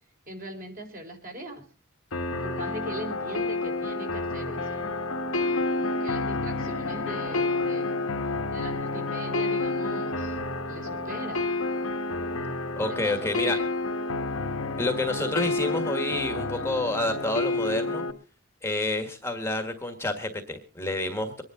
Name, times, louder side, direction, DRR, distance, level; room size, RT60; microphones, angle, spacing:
voice 1, 0.3-1.6 2.4-4.8 5.8-8.0 8.5-10.4 10.7-11.4 12.9-13.7, right 1 dB, 40° right, 2 dB, 4.2 m, -40 dB
sound 1, 2.1-18.1, left 2 dB, 80° left, 1.6 m, -29 dB
voice 2, 12.8-13.6 14.8-18.0 18.6-21.4, left 2 dB, 10° left, 6 dB, 1.6 m, -29 dB
24.5 x 10.5 x 3.8 m, 0.36 s
head